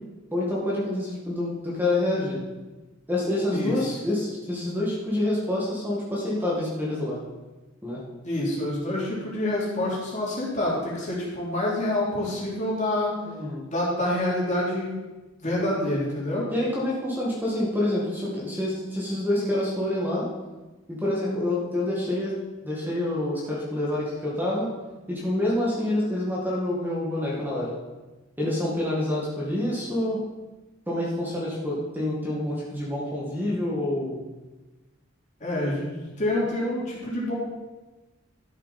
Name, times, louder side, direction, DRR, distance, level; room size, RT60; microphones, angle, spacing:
voice 1, 0.3-2.4 3.1-7.2 7.8-8.0 13.3-13.6 16.5-20.3 20.9-22.3 22.6-24.7 25.1-27.7 28.4-30.2 30.9-34.2, left 1 dB, 10° right, -5 dB, 1.9 m, -27 dB
voice 2, 3.5-4.0 8.2-13.1 13.7-15.0 15.4-16.4 35.4-37.3, left 1 dB, 35° left, -6 dB, 3.3 m, -27 dB
12.5 x 7.4 x 4.3 m, 1.1 s
head